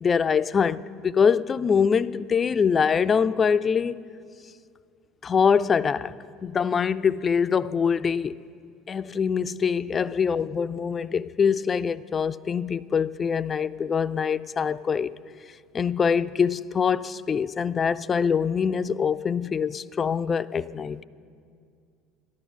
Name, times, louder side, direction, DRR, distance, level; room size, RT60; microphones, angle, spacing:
voice 1, 0.0-4.0 5.2-6.1 6.4-8.4 8.9-15.1 15.7-21.0, left 6 dB, 30° left, 0.3 m, -24 dB
14.0 x 12.0 x 5.4 m
figure-of-eight pair, 65°, 0 cm